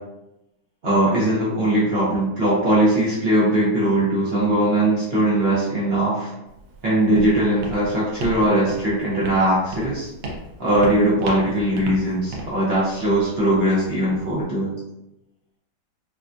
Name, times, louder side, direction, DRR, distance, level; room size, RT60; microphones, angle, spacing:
voice 1, 0.8-6.3 6.8-10.1 10.6-14.7, right 1 dB, 60° right, -7 dB, 0.6 m, -20 dB
Walk footsteps, 6.5-14.4, right 2 dB, 90° right, 1.5 m, -35 dB
3.7 x 2.2 x 2.5 m, 0.91 s
omnidirectional pair, 2.1 m